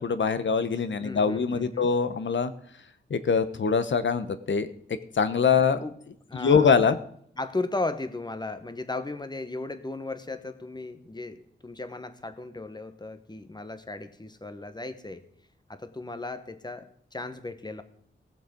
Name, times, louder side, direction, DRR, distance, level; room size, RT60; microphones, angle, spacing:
voice 1, 0.0-2.5 3.1-4.7 5.1-5.8 6.3-7.0, left 6 dB, 65° left, 12 dB, 1.0 m, -23 dB
voice 2, 1.0-1.9 5.8-5.9 6.3-6.8 7.4-15.3 15.7-17.8, left 2 dB, 20° left, 10 dB, 1.2 m, -36 dB
17.5 x 7.3 x 5.2 m, 0.65 s
wide cardioid pair, 85°, 20 cm